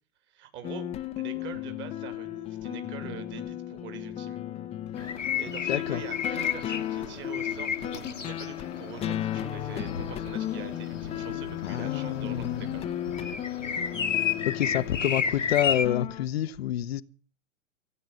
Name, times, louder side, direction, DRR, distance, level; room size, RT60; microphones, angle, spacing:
voice 1, 0.3-4.4 5.0-12.9, right 9 dB, 30° right, 2.6 m, -44 dB
sound 1, 0.6-16.3, left 12 dB, 15° left, 0.7 m, -35 dB
sound 2, 5.0-15.9, left 7 dB, 80° left, 1.5 m, -33 dB
voice 2, 5.7-6.0 11.6-12.8 14.4-17.0, left 12 dB, 55° left, 0.9 m, -28 dB
16.5 x 9.2 x 7.6 m
figure-of-eight pair, 100°, 37 cm